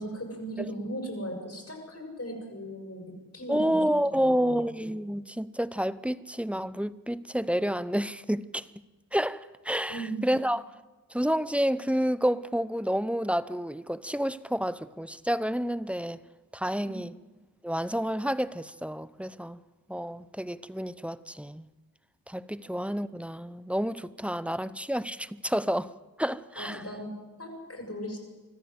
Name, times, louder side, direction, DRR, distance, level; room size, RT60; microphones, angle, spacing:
voice 1, 0.0-4.6 9.9-10.2 16.8-17.0 22.5-22.6 26.5-28.2, right 1 dB, 45° left, 6.9 m, -38 dB
voice 2, 3.5-8.7 9.1-10.7 11.1-16.2 16.5-17.1 17.6-19.6 19.9-21.7 22.3-25.9 26.2-26.8, equal, 5° right, 0.8 m, -29 dB
25.0 x 14.5 x 8.1 m
cardioid pair, 50°, 35 cm